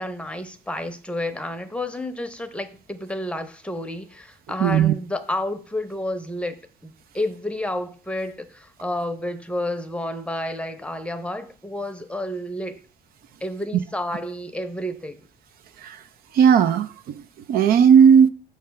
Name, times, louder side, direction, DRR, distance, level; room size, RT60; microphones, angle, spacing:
voice 1, 0.0-12.8 13.4-15.3, left 1 dB, 5° left, 0.7 m, -30 dB
voice 2, 4.6-4.9 15.8-16.0 16.3-17.1 17.5-18.3, right 7 dB, 60° right, 0.5 m, -15 dB
6.6 x 3.2 x 5.7 m
cardioid pair, 110°, 17 cm